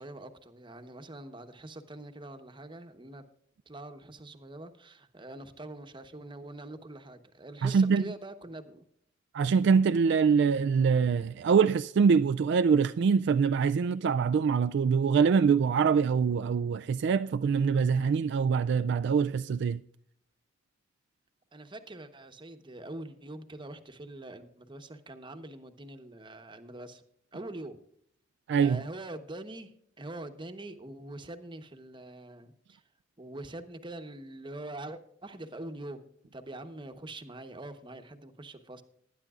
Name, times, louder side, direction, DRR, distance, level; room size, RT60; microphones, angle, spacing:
voice 1, 0.0-3.2 3.7-8.8 21.5-27.0 27.3-27.8 28.6-29.7 30.0-32.8 33.2-38.8, right 1 dB, 25° right, 1.0 m, -44 dB
voice 2, 7.6-8.0 9.3-19.8 28.5-28.8, right 6 dB, 60° right, 0.3 m, -24 dB
20.0 x 10.5 x 2.4 m
head